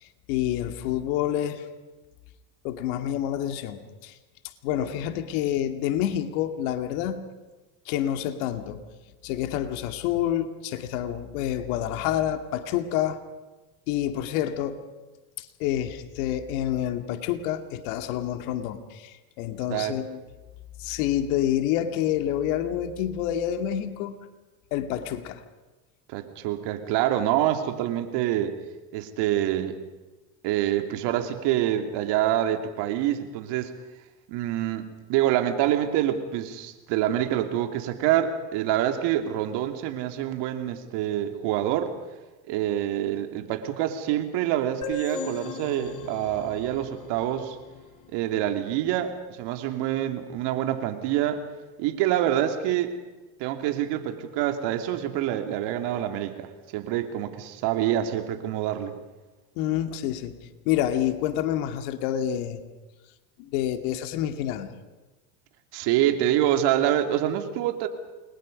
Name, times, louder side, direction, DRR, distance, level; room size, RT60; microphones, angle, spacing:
voice 1, 0.3-1.7 2.6-4.2 4.6-7.3 7.9-8.8 9.2-13.2 13.9-14.8 15.4-20.2 20.8-24.2 24.7-25.4 59.6-60.4 60.6-62.7 63.4-64.7, left 11 dB, 65° left, 7 dB, 2.5 m, -28 dB
voice 2, 26.1-28.6 28.9-29.9 30.4-33.7 34.3-41.9 42.5-47.6 48.1-51.4 51.8-53.0 53.4-58.9 65.7-67.9, right 12 dB, 60° right, 6 dB, 2.9 m, -26 dB
sound 1, 44.8-48.4, left 3 dB, 40° left, 4.5 m, -38 dB
29.0 x 22.0 x 5.4 m, 1.2 s
hypercardioid pair, 100°, 47 cm